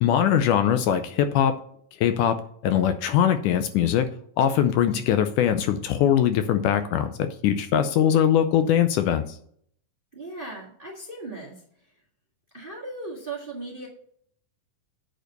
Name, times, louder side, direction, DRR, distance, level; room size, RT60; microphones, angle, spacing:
voice 1, 0.0-1.5 2.0-2.4 2.6-4.1 4.4-9.4, left 9 dB, 80° left, 9 dB, 2.0 m, -21 dB
voice 2, 10.1-11.9 12.5-13.9, right 2 dB, 25° right, -2 dB, 1.2 m, -37 dB
9.0 x 5.0 x 6.5 m, 0.63 s
omnidirectional pair, 3.9 m